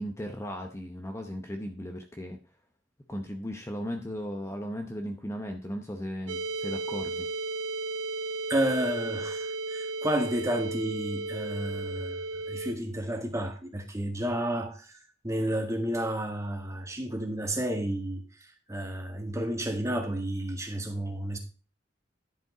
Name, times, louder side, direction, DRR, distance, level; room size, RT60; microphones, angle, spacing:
voice 1, 0.0-2.4 3.1-7.3, equal, 15° left, 0.8 m, -36 dB
sound 1, 6.3-12.7, right 3 dB, 90° right, 0.9 m, -34 dB
voice 2, 8.5-15.0 15.2-18.2 18.7-21.4, right 1 dB, 15° right, 1.7 m, -31 dB
11.0 x 5.2 x 4.9 m
head